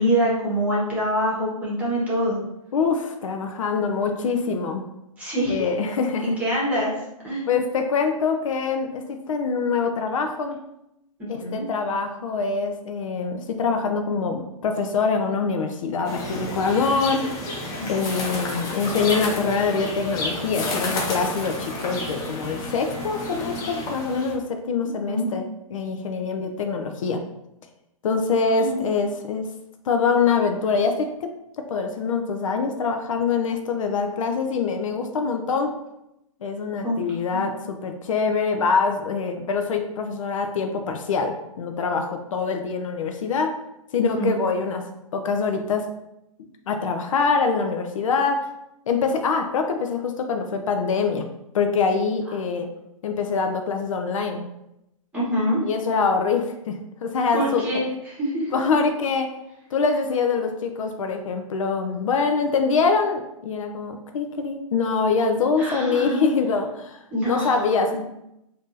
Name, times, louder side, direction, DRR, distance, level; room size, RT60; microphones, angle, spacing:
voice 1, 0.0-2.4 5.2-5.7 6.2-6.9 7.2-7.4 11.2-11.6 17.8-17.9 25.1-25.3 28.6-28.8 36.8-36.9 37.3-37.4 44.0-44.3 55.1-55.6 57.3-58.5 65.6-66.3 67.1-67.6 67.9-68.0, equal, 10° right, -7 dB, 1.3 m, -25 dB
voice 2, 2.7-4.8 5.5-6.4 7.5-10.6 11.3-17.4 17.9-25.4 25.7-27.2 28.0-29.5 29.9-31.3 31.6-35.7 36.4-43.5 43.9-44.9 45.1-45.9 46.7-48.5 48.9-51.3 51.5-52.7 53.0-54.5 55.6-57.6 58.5-59.3 59.7-68.0, left 5 dB, 65° left, 5 dB, 0.4 m, -24 dB
sound 1, 16.0-24.3, left 2 dB, 20° left, 0.6 m, -31 dB
3.5 x 2.6 x 2.6 m, 0.86 s
hypercardioid pair, 130°, 18 cm